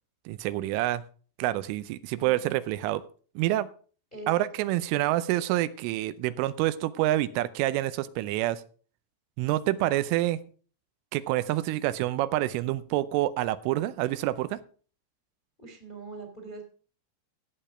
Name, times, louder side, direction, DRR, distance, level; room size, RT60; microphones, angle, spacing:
voice 1, 0.3-1.0 1.4-3.0 3.4-3.7 4.3-8.6 9.4-10.4 11.1-14.6, right 15 dB, 85° right, 3.2 m, -27 dB
voice 2, 15.6-16.6, right 3 dB, 15° left, 1.6 m, -42 dB
13.5 x 8.7 x 5.0 m
omnidirectional pair, 5.6 m